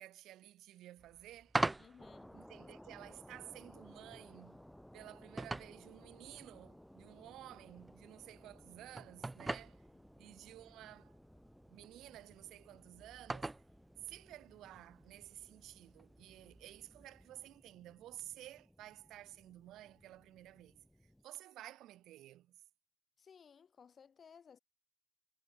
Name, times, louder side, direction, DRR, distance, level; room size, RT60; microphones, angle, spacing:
voice 1, 0.0-1.6 2.3-4.6 4.9-9.8 10.2-11.2 11.7-13.5 14.0-22.6, right 14 dB, 85° right, 1.0 m, -53 dB
sound 1, 1.0-17.3, right 2 dB, 15° right, 1.1 m, -46 dB
voice 2, 1.8-2.3 9.9-10.0 23.2-24.6, left 6 dB, 45° left, 1.2 m, -60 dB
sound 2, 2.0-21.2, left 1 dB, 5° left, 1.1 m, -60 dB
cardioid pair, 95°, 0 cm